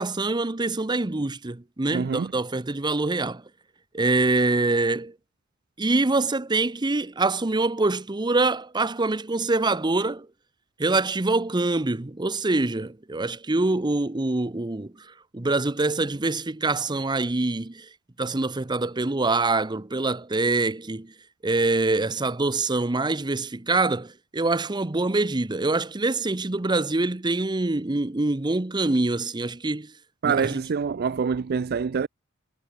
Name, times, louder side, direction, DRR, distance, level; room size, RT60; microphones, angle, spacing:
voice 1, 0.0-3.4 3.9-5.1 5.8-10.3 10.8-17.9 18.2-21.1 21.4-29.9 30.2-30.6, right 2 dB, 20° right, 0.7 m, -25 dB
voice 2, 1.9-2.3 30.2-32.1, right 6 dB, 50° right, 0.4 m, -25 dB
head